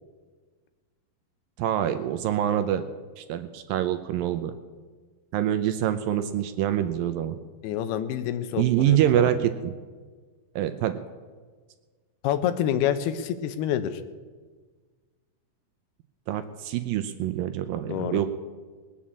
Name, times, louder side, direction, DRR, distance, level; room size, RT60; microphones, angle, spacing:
voice 1, 1.6-2.8 3.2-4.5 5.3-7.4 8.6-9.7 10.6-11.0 16.3-18.3, right 11 dB, 80° right, 9 dB, 2.2 m, -25 dB
voice 2, 7.6-9.3 12.2-14.0 17.9-18.2, left 10 dB, 85° left, 11 dB, 2.9 m, -27 dB
20.0 x 7.3 x 8.5 m, 1.5 s
omnidirectional pair, 4.5 m